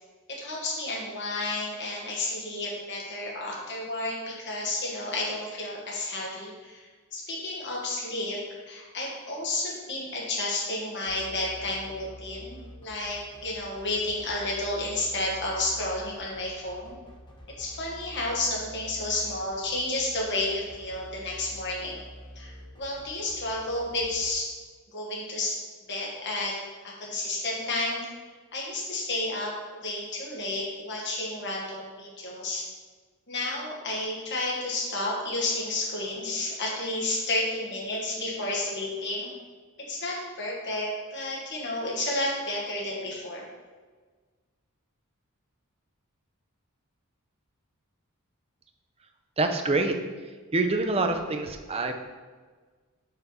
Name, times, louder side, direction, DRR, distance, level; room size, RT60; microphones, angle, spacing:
voice 1, 0.3-16.9 17.6-22.0 22.3-24.5 24.9-25.6 25.9-26.6 26.8-28.0 28.5-29.5 29.8-32.7 33.3-39.3 39.9-43.4, left 2 dB, 50° left, -3 dB, 1.6 m, -31 dB
sound 1, 11.1-24.3, equal, 20° left, 1.1 m, -47 dB
voice 2, 49.4-50.0 50.5-51.9, right 3 dB, 25° right, 5 dB, 0.6 m, -26 dB
5.7 x 4.5 x 5.4 m, 1.4 s
head